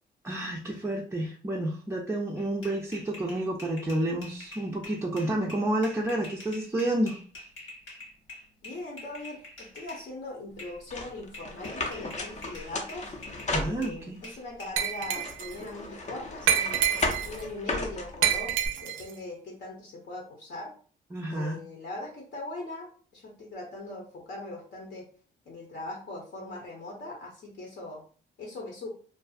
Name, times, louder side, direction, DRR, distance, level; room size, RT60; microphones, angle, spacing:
voice 1, 0.2-7.2 13.5-14.2 21.1-21.6, right 1 dB, 10° right, -2 dB, 0.4 m, -30 dB
sound 1, 2.4-10.1 10.6-10.8 11.3-14.7, left 2 dB, 80° left, 1.5 m, -46 dB
voice 2, 8.6-13.1 13.6-16.9 17.2-20.7 21.3-22.9 23.1-25.1 25.5-28.0 28.4-28.9, left 2 dB, 60° left, -1 dB, 0.8 m, -40 dB
sound 2, 10.9-14.2 14.8-18.7, left 2 dB, 35° left, 0.6 m, -35 dB
Glass, 14.8-15.5 16.5-17.4 18.2-19.1, right 9 dB, 85° right, 0.5 m, -27 dB
2.6 x 2.4 x 2.3 m, 0.42 s
cardioid pair, 90°, 20 cm